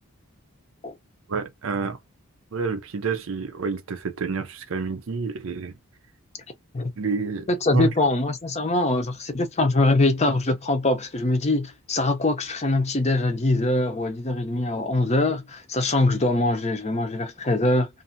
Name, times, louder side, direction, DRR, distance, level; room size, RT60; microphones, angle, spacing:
voice 1, 1.3-2.0 2.5-5.8 7.0-7.9, right 4 dB, 65° right, 0.6 m, -28 dB
voice 2, 7.5-17.9, left 2 dB, 30° left, 0.6 m, -23 dB
2.6 x 2.6 x 2.6 m
head